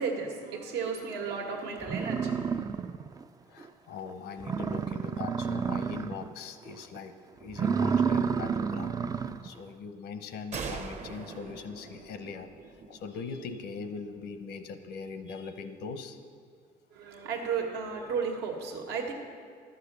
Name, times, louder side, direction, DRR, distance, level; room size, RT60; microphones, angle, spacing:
voice 1, 0.0-2.3 16.9-19.1, right 5 dB, 80° right, 2 dB, 1.5 m, -33 dB
sound 1, 1.4-1.5 1.8-3.2 3.6-3.7 4.1-4.2 4.4-6.3 6.7-7.0 7.5-9.5, right 6 dB, 20° right, 0.3 m, -30 dB
voice 2, 3.5-7.1 7.4-9.0 9.4-12.5 12.9-16.2, left 5 dB, 75° left, 9 dB, 0.8 m, -41 dB
sound 2, 10.5-14.0, right 5 dB, 45° right, 0.9 m, -42 dB
11.5 x 6.8 x 6.7 m, 2.1 s
cardioid pair, 110°, 17 cm